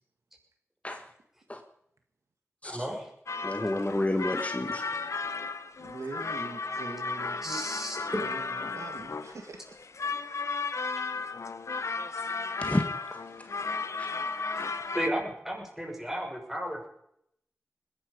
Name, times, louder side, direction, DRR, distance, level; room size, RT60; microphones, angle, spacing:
voice 1, 2.6-3.1 7.4-8.0 14.9-16.9, equal, 5° right, 1 dB, 5.9 m, -33 dB
sound 1, 3.3-15.1, left 4 dB, 80° left, 0.9 m, -34 dB
voice 2, 3.4-4.8 12.6-12.8 13.1-13.2 14.0-14.1, left 1 dB, 25° left, 6 dB, 1.6 m, -30 dB
voice 3, 5.8-7.6 8.1-9.6, right 3 dB, 90° right, 5 dB, 1.9 m, -42 dB
21.0 x 11.5 x 5.3 m, 0.73 s
cardioid pair, 45°, 5 cm